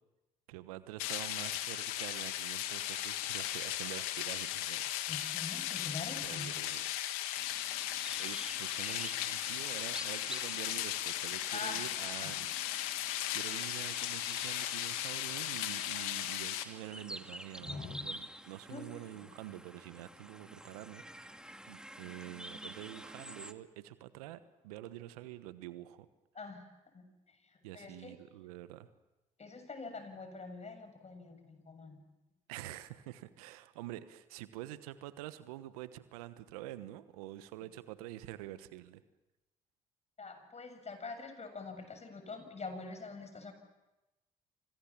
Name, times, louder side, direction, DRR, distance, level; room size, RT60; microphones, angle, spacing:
voice 1, 0.5-4.8 6.2-6.8 8.2-12.5 13.3-21.4 21.7-26.1 27.6-28.9 32.5-39.0, right 15 dB, 85° right, 13 dB, 1.2 m, -47 dB
sound 1, 1.0-16.6, left 13 dB, 80° left, 1.9 m, -37 dB
voice 2, 5.1-6.5 11.5-12.3 17.6-18.0 18.7-19.0 26.4-26.7 26.9-27.0 27.4-28.1 29.4-32.0 40.2-43.5, left 3 dB, 35° left, 8 dB, 7.2 m, -45 dB
sound 2, 7.4-23.5, right 1 dB, 5° right, 2.3 m, -49 dB
29.5 x 26.5 x 7.4 m, 1.0 s
hypercardioid pair, 50°, 18 cm